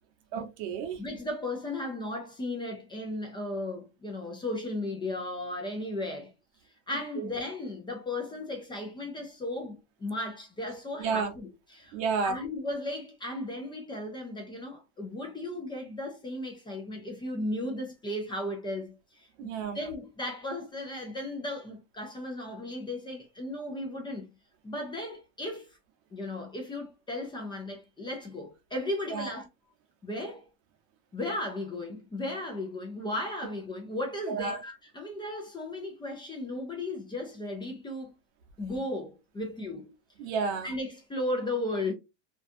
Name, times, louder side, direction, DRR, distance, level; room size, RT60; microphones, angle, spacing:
voice 1, 0.3-1.0 7.2-7.3 11.0-11.3 11.9-12.4 19.4-19.8 29.1-29.3 34.3-34.6 40.2-40.7, right 5 dB, 60° right, 0.8 m, -31 dB
voice 2, 1.0-6.3 6.6-19.5 19.7-24.3 24.6-25.8 26.1-29.5 30.0-30.5 31.1-38.1 38.6-39.9 40.6-41.9, left 1 dB, 15° left, 0.5 m, -35 dB
2.5 x 2.3 x 2.5 m
supercardioid pair, 135°, 38 cm